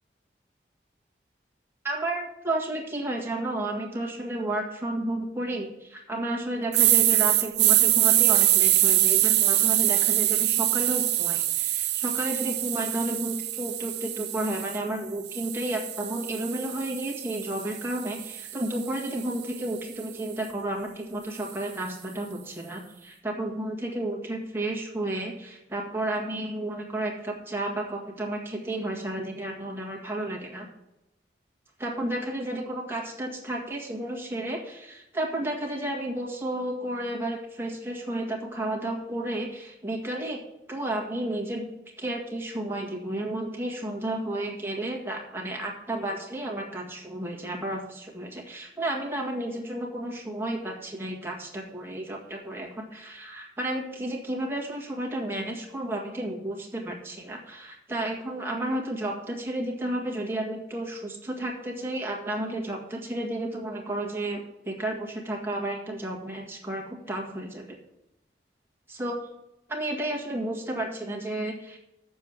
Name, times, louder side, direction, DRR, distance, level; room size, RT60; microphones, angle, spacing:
voice 1, 1.8-30.7 31.8-40.4 40.7-41.7 42.0-67.8 68.9-69.2 69.7-71.8, right 1 dB, 15° right, -1 dB, 1.8 m, -32 dB
sound 1, 6.7-14.8 15.3-19.5, right 14 dB, 70° right, 0.6 m, -24 dB
7.5 x 7.1 x 7.4 m, 0.91 s
head